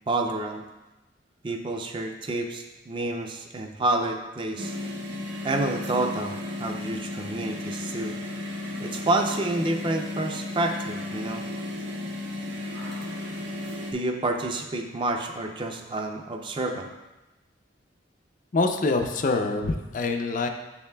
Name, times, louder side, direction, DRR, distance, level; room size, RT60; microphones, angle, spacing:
voice 1, 0.1-0.6 1.4-4.7 5.4-8.1 8.8-11.4 13.9-16.9, right 2 dB, 25° right, 4 dB, 0.4 m, -29 dB
sound 1, 4.6-13.9, left 2 dB, 80° right, 0.9 m, -34 dB
voice 2, 18.5-20.5, left 3 dB, 45° left, 5 dB, 0.4 m, -25 dB
7.0 x 6.5 x 2.2 m, 1.0 s
head